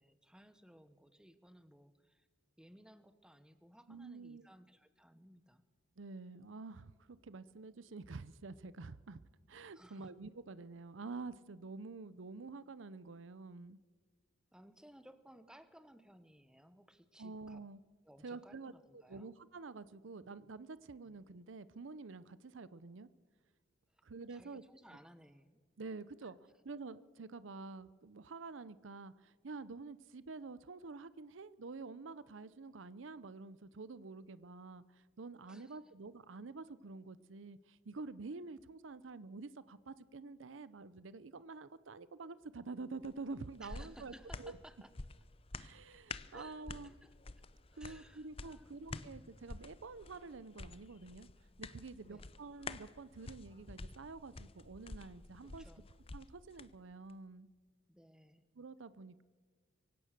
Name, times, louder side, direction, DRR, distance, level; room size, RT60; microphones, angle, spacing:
voice 1, 0.0-2.3 2.6-5.6 9.7-10.1 14.5-17.6 18.0-19.3 21.0-21.2 23.9-24.0 24.3-25.6 26.2-26.3 35.5-35.8 43.6-44.9 46.3-47.4 47.7-49.1 52.0-52.3 55.4-55.8 57.9-58.4, equal, 5° right, 11 dB, 1.0 m, -60 dB
voice 2, 3.9-4.4 6.0-9.2 9.5-13.8 17.2-17.8 18.2-23.1 24.0-24.6 25.8-26.4 26.6-44.6 45.6-46.9 47.8-51.3 51.6-55.6 56.1-57.5 58.6-59.2, right 3 dB, 80° right, 16 dB, 0.7 m, -48 dB
sound 1, 43.0-56.7 57.1-57.2, left 3 dB, 30° left, 0.6 m, -50 dB
24.0 x 16.5 x 6.7 m, 1.5 s
head